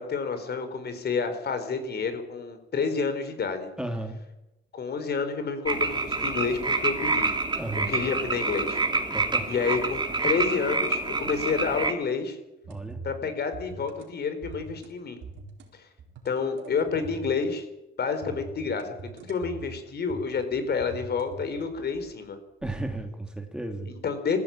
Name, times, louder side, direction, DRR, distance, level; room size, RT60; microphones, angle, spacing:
voice 1, 0.0-3.7 4.7-7.3 7.7-8.8 9.5-12.4 13.0-15.2 16.2-17.7 18.0-18.9 19.3-22.4 23.8-24.4, left 5 dB, 55° left, 9 dB, 4.5 m, -29 dB
voice 2, 3.8-4.2 7.6-7.9 9.1-9.5 12.7-13.0 22.6-23.9, right 2 dB, 5° right, 5 dB, 2.8 m, -34 dB
sound 1, 5.7-11.9, right 3 dB, 20° right, 2.8 m, -27 dB
sound 2, 12.6-13.2 13.5-14.1 14.4-14.9 15.2-15.7 16.0-17.5 18.2-19.8 20.1-22.2 22.6-22.9, right 5 dB, 75° right, 4.3 m, -43 dB
21.0 x 15.0 x 9.1 m, 0.96 s
cardioid pair, 90°, 20 cm